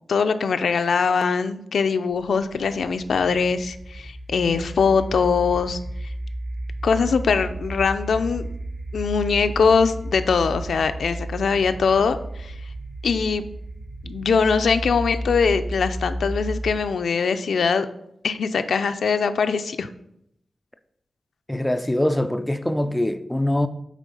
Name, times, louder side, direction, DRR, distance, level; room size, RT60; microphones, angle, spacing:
voice 1, 0.1-5.8 6.8-8.4 8.9-12.5 13.0-13.4 14.0-17.9 18.2-19.9, left 5 dB, 85° left, 0.5 m, -22 dB
sound 1, 2.1-17.0, right 1 dB, 40° right, 1.0 m, -33 dB
voice 2, 21.5-23.7, left 1 dB, 10° left, 0.3 m, -23 dB
8.3 x 3.6 x 5.3 m
wide cardioid pair, 180°, 0 cm